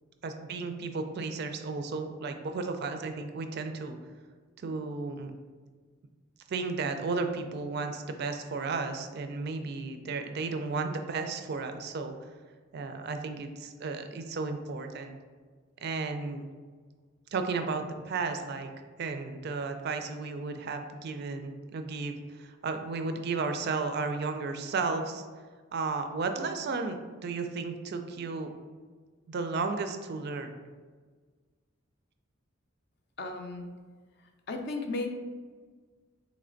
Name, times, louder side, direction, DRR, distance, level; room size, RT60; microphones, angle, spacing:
voice 1, 0.2-4.0 4.6-5.3 6.5-12.1 12.7-15.2 15.8-16.5 17.3-18.7 19.0-25.2 25.7-28.5 29.3-30.6, right 4 dB, 50° right, 7 dB, 0.3 m, -34 dB
voice 2, 33.2-33.6 34.5-35.1, left 2 dB, 55° left, 4 dB, 0.5 m, -34 dB
3.3 x 3.1 x 3.8 m, 1.5 s
head